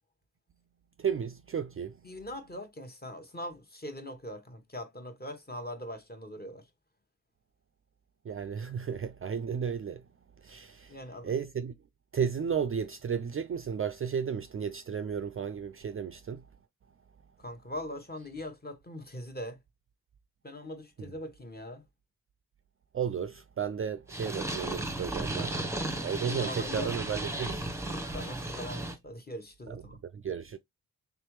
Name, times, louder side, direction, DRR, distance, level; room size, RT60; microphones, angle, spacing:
voice 1, 1.0-1.9 8.3-10.0 10.4-10.9 11.2-11.8 12.1-16.4 22.9-25.6 26.0-27.7 29.7-29.8 30.1-30.6, right 7 dB, 35° right, 0.4 m, -33 dB
voice 2, 2.0-6.7 10.9-11.3 17.4-19.6 20.4-21.8 26.3-27.6 28.1-30.0, left 1 dB, 25° left, 1.1 m, -41 dB
Purr, 24.1-29.0, right 1 dB, 10° right, 0.9 m, -35 dB
3.5 x 3.3 x 3.0 m
cardioid pair, 50°, 37 cm